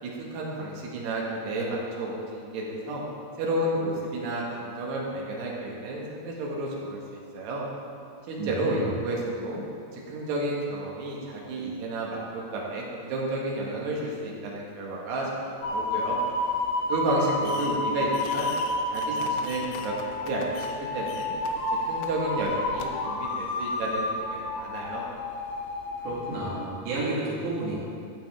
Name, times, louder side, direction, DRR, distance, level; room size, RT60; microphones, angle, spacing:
voice 1, 0.0-3.0 3.4-7.7 8.3-9.6 9.9-16.2 16.9-18.5 18.9-19.9 20.3-21.4 21.9-25.1, right 1 dB, 70° right, -3 dB, 3.6 m, -31 dB
voice 2, 8.4-8.9 26.0-27.8, right 2 dB, 85° right, -7 dB, 4.7 m, -31 dB
sound 1, 15.6-26.7, left 2 dB, 70° left, 2.0 m, -30 dB
Fireworks, 17.4-17.9 18.1-20.8 21.1-21.5 22.0-22.1 22.8-22.9, left 7 dB, 85° left, 2.9 m, -43 dB
14.0 x 8.8 x 3.6 m, 2.5 s
omnidirectional pair, 4.9 m